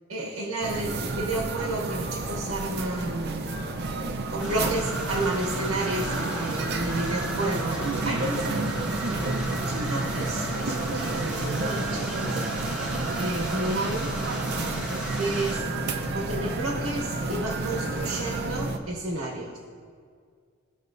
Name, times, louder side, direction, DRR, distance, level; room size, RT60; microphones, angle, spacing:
voice 1, 0.1-3.5 3.8-8.6 9.6-12.4 13.2-14.2 15.2-15.7 16.1-19.6, right 2 dB, 75° right, -2 dB, 1.0 m, -31 dB
sound 1, 0.6-18.8, right 2 dB, 50° right, 0.6 m, -30 dB
sound 2, 4.4-15.6, right 1 dB, 5° right, 1.1 m, -36 dB
15.5 x 5.3 x 2.6 m, 2.1 s
head